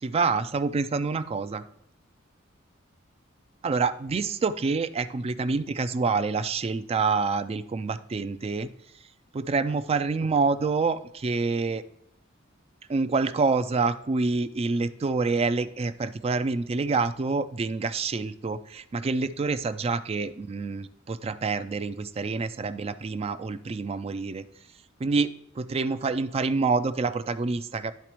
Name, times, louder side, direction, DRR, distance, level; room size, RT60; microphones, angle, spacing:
voice 1, 0.0-1.6 3.6-8.7 9.0-9.1 9.3-11.8 12.9-24.4 25.0-27.9, right 4 dB, 30° right, 12 dB, 0.3 m, -27 dB
11.5 x 4.0 x 3.0 m, 0.77 s
head